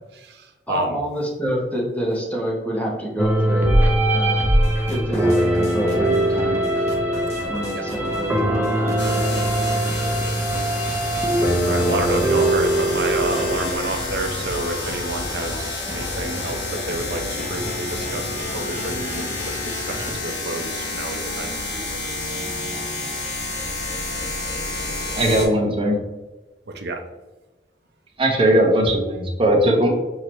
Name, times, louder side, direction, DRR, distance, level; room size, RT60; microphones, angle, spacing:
voice 1, 0.1-1.0 7.7-7.8 11.6-22.1 26.7-27.0, right 2 dB, 65° right, 5 dB, 0.6 m, -29 dB
voice 2, 0.7-3.8 4.1-4.5 4.9-6.6 7.5-9.0, equal, 10° left, -3 dB, 0.9 m, -27 dB
sound 1, 3.2-13.7, right 1 dB, 10° right, 0.6 m, -21 dB
sound 2, 4.6-20.1, left 1 dB, 40° left, 1.0 m, -35 dB
sound 3, 9.0-25.5, left 2 dB, 70° left, 1.2 m, -30 dB
voice 3, 25.2-26.0 28.2-29.9, right 1 dB, 30° right, 0 dB, 0.9 m, -18 dB
5.9 x 2.8 x 3.1 m, 1.1 s
head